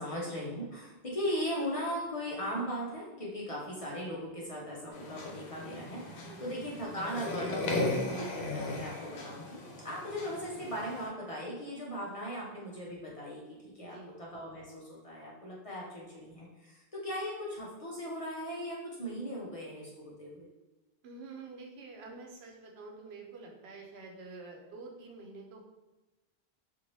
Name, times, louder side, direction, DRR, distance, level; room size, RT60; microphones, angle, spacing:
voice 1, 0.0-20.5, equal, 40° left, -4 dB, 0.5 m, -38 dB
sound 1, 4.9-11.1, left 2 dB, 85° left, 0.9 m, -37 dB
voice 2, 13.8-14.1 21.0-25.6, right 3 dB, 85° right, 0 dB, 0.9 m, -48 dB
2.7 x 2.5 x 3.1 m, 1.1 s
omnidirectional pair, 1.1 m